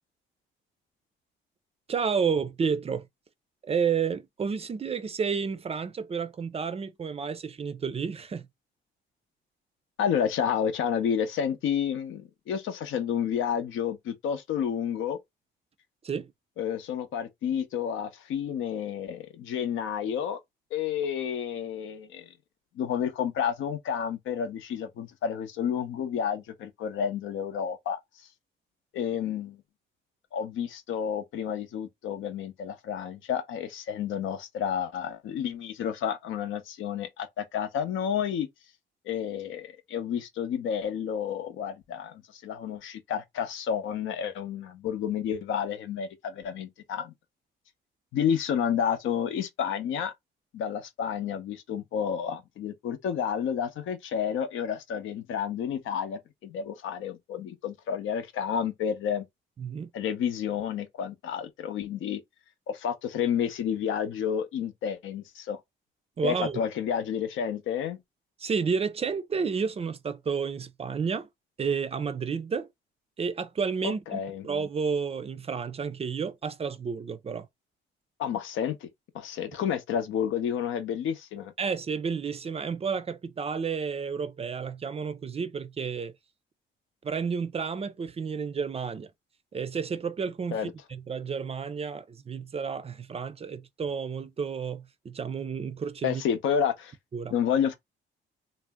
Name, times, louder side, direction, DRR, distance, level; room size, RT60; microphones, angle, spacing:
voice 1, 1.9-3.1 3.6-8.5 16.0-16.3 59.6-59.9 66.2-66.6 68.4-71.3 71.6-72.7 73.2-77.5 81.6-86.2 87.0-89.1 89.5-96.2 97.1-97.3, right 6 dB, 30° right, 0.4 m, -31 dB
voice 2, 10.0-15.2 16.6-20.4 20.7-22.3 22.8-28.0 28.9-29.6 30.3-38.5 39.1-47.1 48.1-50.1 50.5-59.2 59.9-62.2 62.7-65.6 66.2-68.0 73.8-74.4 78.2-78.9 79.1-81.5 90.5-90.7 96.0-96.9 97.3-97.7, left 8 dB, 80° left, 0.7 m, -30 dB
2.6 x 2.0 x 3.4 m
cardioid pair, 90°, 20 cm